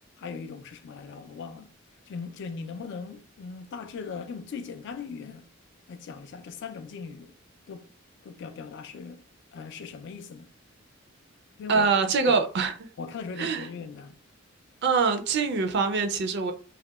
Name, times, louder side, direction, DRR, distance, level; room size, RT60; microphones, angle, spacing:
voice 1, 0.2-1.7 2.1-5.5 5.9-7.3 7.7-7.9 8.2-9.2 9.5-10.5 11.6-11.9 12.3-12.4 13.0-14.2, left 5 dB, 60° left, 0.3 m, -39 dB
voice 2, 11.7-12.7 13.4-13.7 14.8-16.5, right 5 dB, 55° right, 0.4 m, -24 dB
2.8 x 2.1 x 2.3 m
head